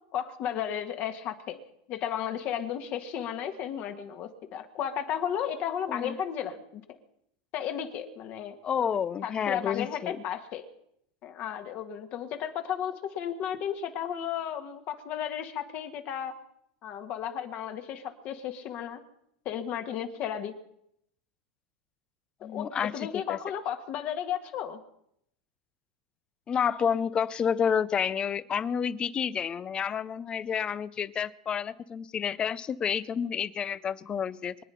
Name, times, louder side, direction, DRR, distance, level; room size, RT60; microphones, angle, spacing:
voice 1, 0.1-1.6 1.9-6.8 7.5-8.6 9.2-10.7 11.2-16.3 16.8-19.0 19.4-20.5 22.5-24.8, left 9 dB, 45° left, 7 dB, 1.7 m, -34 dB
voice 2, 8.6-10.2 22.4-23.4 26.5-34.6, left 7 dB, 25° left, 19 dB, 0.6 m, -30 dB
24.5 x 9.0 x 5.7 m, 0.75 s
supercardioid pair, 130°, 4 cm